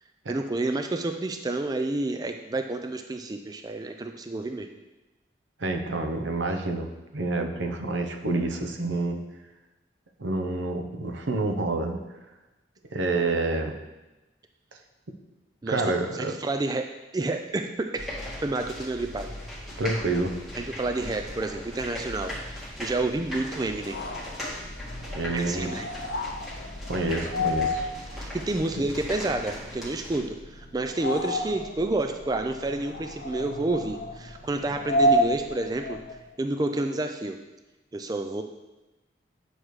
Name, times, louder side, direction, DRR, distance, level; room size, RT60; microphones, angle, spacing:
voice 1, 0.3-4.7 15.6-15.8 16.1-18.1 18.4-19.3 20.6-24.0 25.3-25.9 28.1-36.0 36.4-37.4 37.9-38.4, right 2 dB, 20° right, 6 dB, 0.3 m, -29 dB
voice 2, 5.6-6.9 7.1-9.2 10.2-12.0 12.9-13.7 15.7-16.3 19.8-20.3 25.1-25.7 26.9-27.9, right 2 dB, 85° right, 5 dB, 0.8 m, -28 dB
sound 1, 18.0-30.2, left 1 dB, ahead, 1.5 m, -38 dB
sound 2, 23.7-36.3, equal, 60° left, 0.7 m, -31 dB
9.2 x 6.2 x 3.2 m, 1.1 s
head